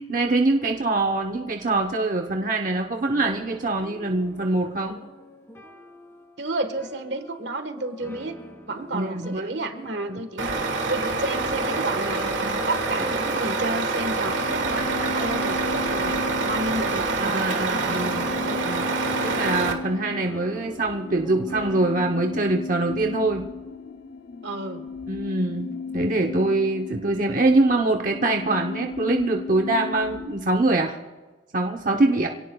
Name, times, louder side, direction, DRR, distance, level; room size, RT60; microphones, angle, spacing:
voice 1, 0.0-5.0 8.9-9.6 10.1-10.2 17.2-18.3 18.6-18.9 19.2-23.5 25.1-31.0 31.5-32.3, right 2 dB, 45° right, 2 dB, 0.9 m, -24 dB
sound 1, 3.1-22.7, left 1 dB, 15° left, 2.1 m, -45 dB
voice 2, 6.4-8.4 8.7-18.2 18.5-18.6 24.4-24.8, right 2 dB, 70° right, 8 dB, 1.5 m, -31 dB
Truck, 10.4-19.7, right 3 dB, 85° right, 1.8 m, -26 dB
sound 2, 14.2-30.5, left 3 dB, 55° left, 0.7 m, -35 dB
27.0 x 17.5 x 2.3 m, 1.3 s
head